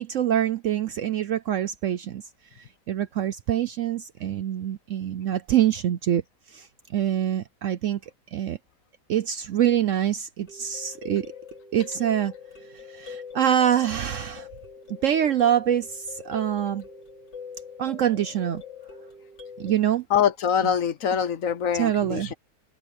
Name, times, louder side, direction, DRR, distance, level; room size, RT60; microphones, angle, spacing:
voice 1, 0.0-2.2 2.9-6.2 6.5-6.7 6.9-8.0 8.3-8.6 9.1-11.3 11.7-12.3 12.9-14.5 15.0-16.8 17.8-18.6 19.6-20.0 21.7-22.3, right 10 dB, 65° right, 0.8 m, -25 dB
sound 1, 10.5-19.7, left 6 dB, 90° left, 6.4 m, -43 dB
voice 2, 20.1-22.3, left 8 dB, 60° left, 1.0 m, -24 dB
omnidirectional pair, 1.8 m